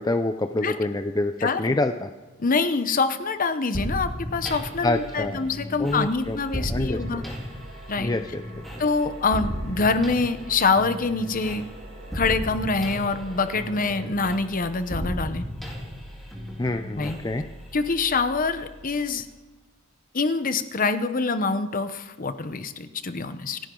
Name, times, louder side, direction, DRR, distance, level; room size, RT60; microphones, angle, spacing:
voice 1, 0.0-2.1 4.8-5.4 5.8-7.0 7.2-7.3 8.0-8.4 16.6-17.4, left 2 dB, 20° left, 7 dB, 0.5 m, -26 dB
voice 2, 1.4-1.8 2.4-7.2 7.9-8.1 8.8-11.7 12.1-15.4 17.0-17.2 17.7-19.3 20.1-23.6, left 4 dB, 40° left, 11 dB, 0.9 m, -25 dB
sound 1, 3.7-19.4, equal, ahead, 3.5 m, -35 dB
sound 2, 6.8-14.1, right 2 dB, 45° right, 3.9 m, -47 dB
28.0 x 10.5 x 3.9 m, 1.3 s
head